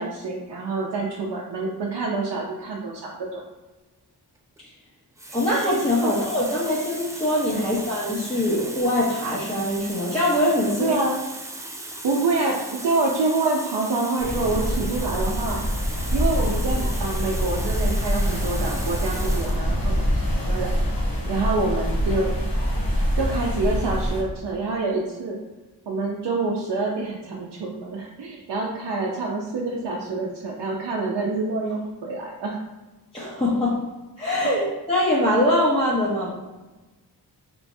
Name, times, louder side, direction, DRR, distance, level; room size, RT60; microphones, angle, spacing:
voice 1, 0.0-3.4 6.0-6.1 7.5-7.7 10.8-11.2 12.0-15.6 16.1-20.7 21.3-22.3 23.2-25.4 25.9-32.6 34.4-34.6, right 3 dB, 75° right, -3 dB, 0.6 m, -27 dB
Water tap faucet, 4.4-4.6 5.2-19.7 20.6-20.7, right 1 dB, 10° right, 0.3 m, -37 dB
voice 2, 5.3-11.0 33.1-33.8 34.2-36.3, left 1 dB, 15° left, -8 dB, 0.7 m, -23 dB
sound 1, 14.2-24.2, equal, 55° left, 1.0 m, -25 dB
3.3 x 3.0 x 2.6 m, 1.2 s
wide cardioid pair, 75°, 41 cm